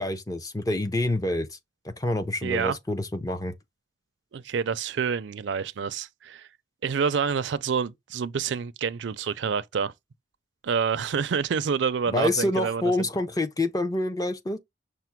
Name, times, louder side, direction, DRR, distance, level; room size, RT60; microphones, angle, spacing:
voice 1, 0.0-1.5 1.8-3.5 12.1-14.6, left 1 dB, 20° left, 0.5 m, -27 dB
voice 2, 2.4-2.8 4.3-6.5 6.8-9.9 10.6-13.1, right 6 dB, 65° right, 0.4 m, -28 dB
5.8 x 2.0 x 4.4 m
head